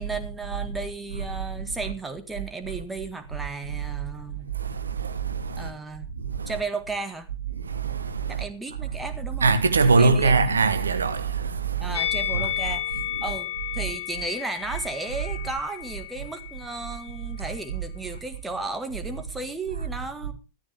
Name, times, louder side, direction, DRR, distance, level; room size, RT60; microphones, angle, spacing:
voice 1, 0.0-4.5 5.6-6.1 6.5-7.3 8.3-9.6 10.0-10.7 11.8-13.5 13.7-20.3, right 3 dB, 10° right, 1.8 m, -34 dB
voice 2, 4.5-5.7 6.2-6.5 7.6-8.4 9.4-11.9 12.3-12.5, right 4 dB, 75° right, 1.1 m, -23 dB
Musical instrument, 11.9-17.2 17.4-17.6, left 12 dB, 65° left, 3.2 m, -32 dB
14.0 x 13.5 x 3.5 m
figure-of-eight pair, 90°, 0 cm